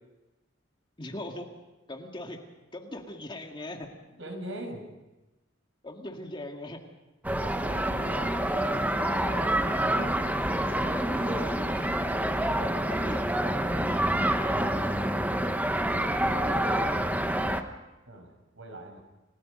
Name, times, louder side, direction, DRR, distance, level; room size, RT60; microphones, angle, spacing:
voice 1, 1.0-1.5 1.9-2.4 2.7-4.0 5.8-6.8 8.1-9.7 10.6-11.7 12.9-13.3, left 1 dB, 25° left, 3 dB, 2.1 m, -40 dB
voice 2, 4.2-4.9 7.3-8.3 9.8-10.2 15.9-16.9 18.1-19.0, right 1 dB, 70° right, 2 dB, 6.2 m, -41 dB
sound 1, 7.2-17.6, right 1 dB, 10° right, 1.1 m, -27 dB
29.5 x 18.5 x 5.3 m, 1.1 s
head